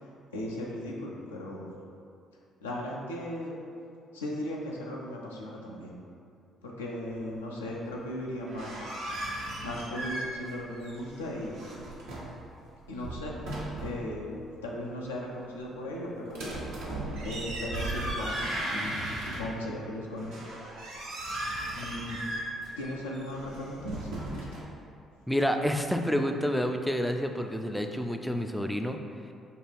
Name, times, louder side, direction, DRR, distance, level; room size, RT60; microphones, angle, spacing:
voice 1, 0.3-1.7 2.6-3.6 4.1-6.0 6.6-8.9 9.6-11.7 12.9-13.4 13.8-14.4 14.6-16.6 17.2-20.4 21.7-22.2 22.8-24.5, left 1 dB, 90° left, -3 dB, 0.4 m, -37 dB
sound 1, 8.3-10.6 10.8-12.4 12.9-14.1 16.3-19.7 20.2-24.6, right 1 dB, 80° right, 0.9 m, -36 dB
voice 2, 25.3-29.0, equal, ahead, 5 dB, 0.3 m, -29 dB
4.5 x 2.3 x 3.3 m, 2.4 s
hypercardioid pair, 45°, 0 cm